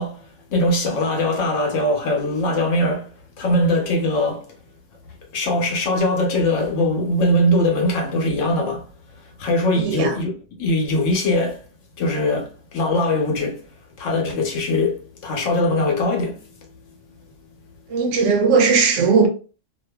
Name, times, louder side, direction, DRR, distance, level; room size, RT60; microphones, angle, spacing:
voice 1, 0.0-3.1 3.4-4.5 5.3-8.9 9.2-10.3 10.6-11.6 12.0-13.6 14.0-16.4, left 1 dB, 85° left, 1.2 m, -21 dB
voice 2, 9.7-10.1 17.9-19.3, right 5 dB, 80° right, 1.0 m, -17 dB
2.5 x 2.5 x 2.2 m
omnidirectional pair, 1.3 m